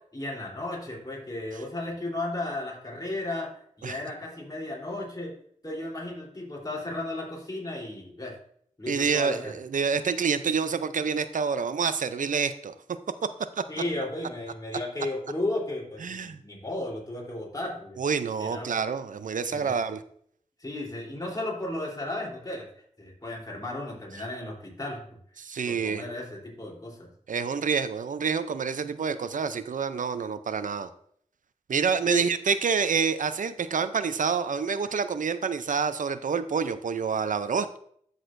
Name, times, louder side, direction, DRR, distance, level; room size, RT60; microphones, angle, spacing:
voice 1, 0.1-5.3 5.6-8.4 8.8-9.5 13.7-18.0 18.4-18.7 19.5-19.8 20.6-22.7 23.0-25.0 25.6-27.1 32.0-32.3, left 2 dB, 30° left, -3 dB, 3.3 m, -34 dB
voice 2, 8.9-12.7 13.2-13.3 13.6-13.7 16.0-16.4 18.0-20.0 25.4-26.0 27.3-30.9 31.7-37.8, right 6 dB, 90° right, 12 dB, 0.5 m, -27 dB
12.5 x 6.5 x 2.6 m, 0.65 s
wide cardioid pair, 65°, 13 cm